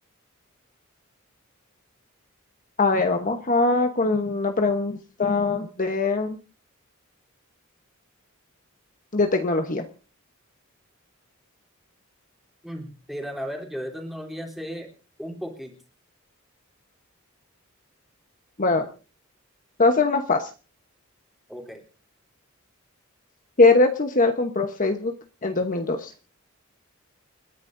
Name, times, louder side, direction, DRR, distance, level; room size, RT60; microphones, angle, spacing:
voice 1, 2.8-6.4 9.1-9.8 18.6-18.9 19.8-20.5 23.6-25.1 25.4-26.1, left 3 dB, 40° left, 5 dB, 1.0 m, -21 dB
voice 2, 12.6-14.9 15.2-15.8 21.5-21.8, equal, ahead, 1 dB, 3.4 m, -35 dB
29.5 x 10.5 x 2.6 m, 0.35 s
head